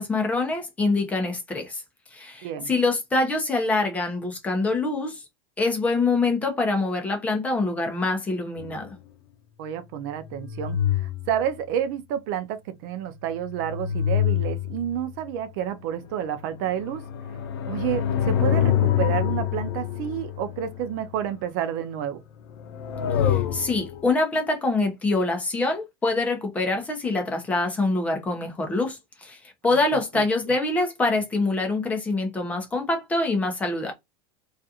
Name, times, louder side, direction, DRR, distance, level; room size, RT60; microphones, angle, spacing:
voice 1, 0.0-1.8 2.1-5.2 5.6-9.0 23.2-33.9, left 3 dB, 10° left, 0.6 m, -25 dB
sound 1, 8.6-8.9 10.1-11.6 13.0-15.3 16.0-21.1 22.3-24.1, left 10 dB, 85° left, 0.5 m, -27 dB
voice 2, 9.6-17.0 17.7-22.2 30.1-30.2, right 10 dB, 55° right, 0.4 m, -30 dB
2.4 x 2.3 x 2.7 m
supercardioid pair, 170°, 13 cm